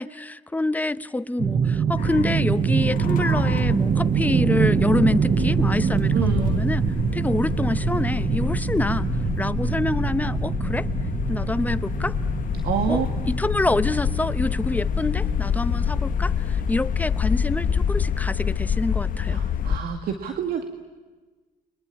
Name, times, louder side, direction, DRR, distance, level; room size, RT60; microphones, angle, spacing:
voice 1, 0.0-6.8 7.1-9.1 9.4-10.9 11.3-12.2 12.9-19.4, left 2 dB, 10° left, 13 dB, 0.9 m, -26 dB
sound 1, 1.4-16.9, right 7 dB, 40° right, 0.9 m, -25 dB
sound 2, 2.0-19.8, left 7 dB, 50° left, 1.4 m, -27 dB
voice 2, 6.1-6.7 12.6-13.3 19.3-20.6, right 8 dB, 65° right, 6 dB, 2.2 m, -27 dB
30.0 x 23.5 x 8.5 m, 1.3 s
cardioid pair, 110°, 17 cm